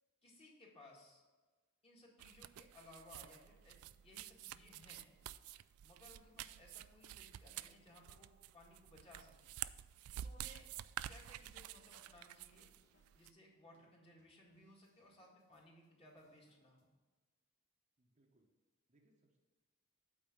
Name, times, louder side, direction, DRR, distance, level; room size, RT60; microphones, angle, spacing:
voice 1, 0.2-1.2 1.8-5.1 5.8-9.5 10.2-10.7 11.1-12.7 13.1-16.9, left 1 dB, 25° left, -2 dB, 1.8 m, -62 dB
sound 1, 2.1-2.2 2.7-2.8 3.4-16.9, left 2 dB, 85° left, 1.7 m, -82 dB
sound 2, 2.2-13.3, right 12 dB, 80° right, 0.3 m, -50 dB
voice 2, 18.0-18.5 18.9-19.4, right 1 dB, 35° right, 1 dB, 0.9 m, -74 dB
8.7 x 4.2 x 7.1 m, 1.3 s
head